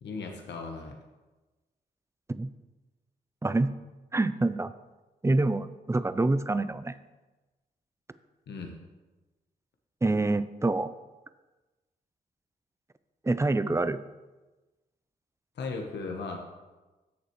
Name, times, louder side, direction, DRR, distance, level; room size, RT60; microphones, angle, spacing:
voice 1, 0.0-0.9 8.5-8.7 15.6-16.4, left 4 dB, 70° left, 2 dB, 1.1 m, -36 dB
voice 2, 4.1-4.7 5.2-6.9 10.0-10.9 13.2-14.0, right 2 dB, 15° right, 14 dB, 0.5 m, -26 dB
10.0 x 6.8 x 3.2 m, 1.1 s
supercardioid pair, 40°, 18 cm